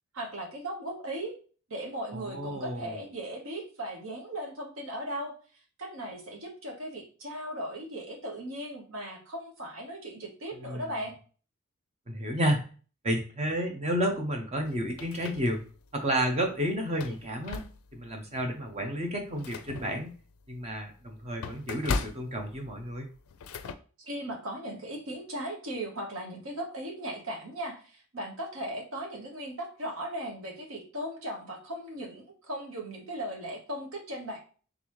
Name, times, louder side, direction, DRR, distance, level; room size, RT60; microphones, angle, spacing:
voice 1, 0.1-1.3 1.7-5.3 5.8-11.1 24.0-34.4, right 1 dB, 70° right, 1 dB, 1.2 m, -37 dB
voice 2, 2.1-3.0 10.6-10.9 12.1-12.6 13.0-15.6 15.9-17.6 17.9-20.1 20.5-23.1, equal, 30° right, 4 dB, 0.6 m, -31 dB
sound 1, 14.6-15.9 16.3-16.4 16.9-18.1 18.6-18.7 19.1-23.7, left 4 dB, 80° left, 0.4 m, -38 dB
3.9 x 3.4 x 3.1 m, 0.40 s
head